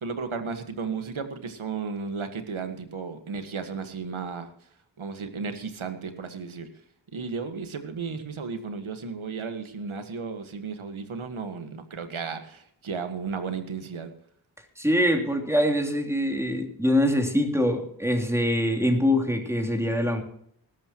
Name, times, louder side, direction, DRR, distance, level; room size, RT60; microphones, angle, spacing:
voice 1, 0.0-4.5 5.0-6.7 7.1-14.1, right 5 dB, 80° right, 8 dB, 1.7 m, -34 dB
voice 2, 14.8-20.2, equal, 5° right, 2 dB, 3.0 m, -24 dB
20.0 x 12.0 x 3.0 m, 0.68 s
cardioid pair, 55°, 48 cm